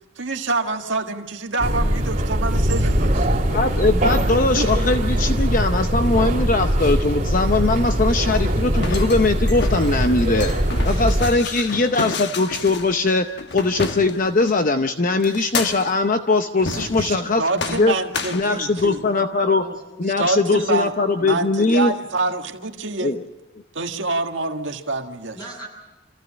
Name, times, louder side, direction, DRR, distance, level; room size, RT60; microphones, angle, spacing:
voice 1, 0.2-3.4 4.5-4.7 16.7-19.0 20.2-20.9 21.2-23.1 23.7-25.4, right 3 dB, 75° right, 3 dB, 1.7 m, -26 dB
sound 1, 1.6-11.3, equal, 40° right, 3.0 m, -21 dB
voice 2, 3.5-10.5 10.8-13.3 13.5-17.4 17.7-17.9 18.3-19.6 20.0-21.9 23.0-23.2, left 3 dB, 45° left, 7 dB, 0.8 m, -20 dB
sound 2, 8.6-14.5 15.2-16.1 16.6-17.3 17.6-19.0, left 4 dB, 60° left, 1.2 m, -31 dB
voice 3, 19.1-20.0 20.3-20.4 25.4-25.7, equal, 20° left, 0 dB, 7.2 m, -38 dB
26.0 x 15.5 x 8.7 m, 1.1 s
head